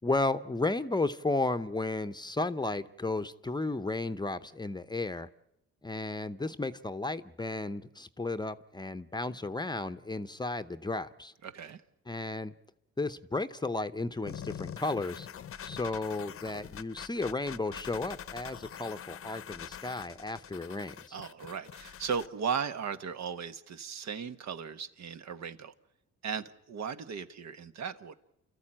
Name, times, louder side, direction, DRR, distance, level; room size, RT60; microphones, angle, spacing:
voice 1, 0.0-5.3 5.8-11.3 12.1-12.5 13.0-15.3 15.6-21.2, left 2 dB, 15° left, 0.8 m, -33 dB
voice 2, 11.4-11.8 21.1-25.7 26.2-28.1, right 6 dB, 60° right, 1.2 m, -36 dB
sound 1, 14.3-22.3, left 9 dB, 45° left, 0.8 m, -44 dB
29.0 x 13.5 x 8.8 m
cardioid pair, 90°, 30 cm